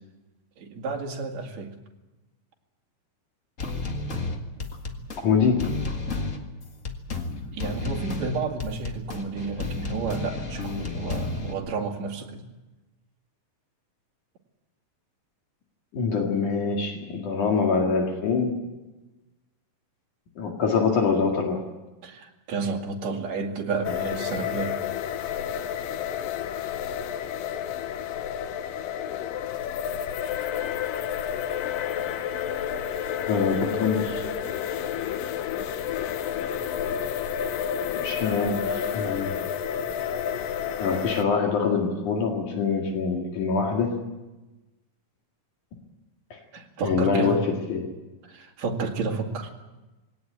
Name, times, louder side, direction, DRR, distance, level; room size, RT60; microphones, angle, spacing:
voice 1, 0.6-1.7 6.1-6.2 7.5-12.5 22.0-24.8 46.5-47.4 48.2-49.5, right 4 dB, 55° right, 1 dB, 3.5 m, -31 dB
sound 1, 3.6-11.5, left 3 dB, 35° left, 1.5 m, -32 dB
voice 2, 5.2-5.7 15.9-18.6 20.4-21.7 33.3-34.2 37.9-39.4 40.8-44.0 46.3-46.4 46.8-47.9, left 5 dB, 65° left, 1 dB, 3.5 m, -24 dB
sound 2, 23.8-41.2, left 9 dB, 90° left, 2.6 m, -30 dB
21.0 x 18.0 x 8.7 m, 1.1 s
omnidirectional pair, 3.8 m